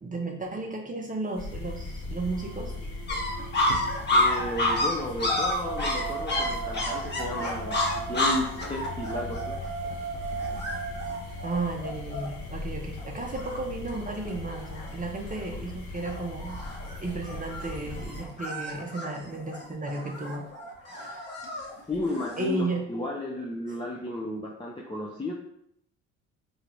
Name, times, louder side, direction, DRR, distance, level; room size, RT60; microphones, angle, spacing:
voice 1, 0.0-2.9 11.4-16.6 16.9-20.4 20.8-21.3 22.4-22.9, right 2 dB, 25° right, 1 dB, 0.8 m, -34 dB
sound 1, 1.4-18.2, left 3 dB, 55° left, 1.2 m, -39 dB
sound 2, 1.7-1.8 2.3-4.2 5.5-11.5, right 7 dB, 65° right, 0.5 m, -37 dB
sound 3, 3.1-12.5 13.0-13.1 13.3-14.0 14.2-14.9 15.4-15.7 16.0-22.5, left 2 dB, 30° left, 1.4 m, -30 dB
voice 2, 4.1-9.6 21.9-25.3, left 1 dB, 15° left, -2 dB, 0.7 m, -33 dB
3.7 x 3.4 x 3.1 m, 0.73 s
hypercardioid pair, 65°, 34 cm